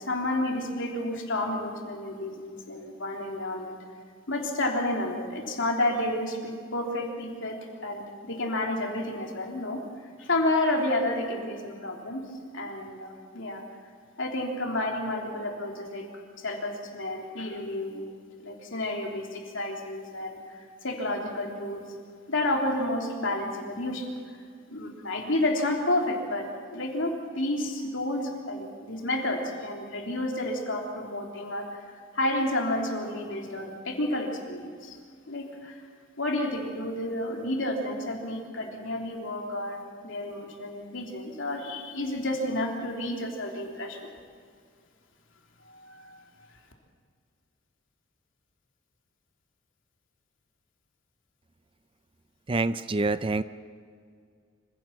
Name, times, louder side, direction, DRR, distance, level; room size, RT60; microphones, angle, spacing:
voice 1, 0.0-3.8 4.3-9.9 10.2-13.6 14.2-16.1 16.4-18.1 18.4-21.9 22.3-24.2 24.7-35.0 35.3-35.8 36.2-44.1 45.6-46.2, left 1 dB, 60° left, 1 dB, 3.4 m, -31 dB
voice 2, 52.5-53.4, right 3 dB, 25° right, 14 dB, 0.4 m, -26 dB
26.0 x 16.5 x 7.7 m, 2.1 s
head